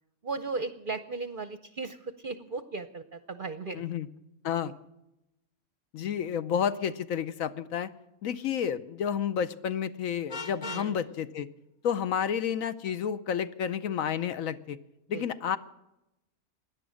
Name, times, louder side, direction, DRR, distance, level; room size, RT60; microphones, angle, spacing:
voice 1, 0.2-3.8 10.6-11.1 15.1-15.2, right 4 dB, 45° right, 11 dB, 0.7 m, -36 dB
voice 2, 3.7-4.1 4.4-4.7 5.9-7.9 8.2-11.5 11.8-14.8 15.1-15.6, left 8 dB, 70° left, 13 dB, 1.1 m, -30 dB
Vehicle horn car horn honking, 10.3-10.9, left 4 dB, 40° left, 0.6 m, -38 dB
17.0 x 11.0 x 6.3 m, 0.89 s
omnidirectional pair, 1.6 m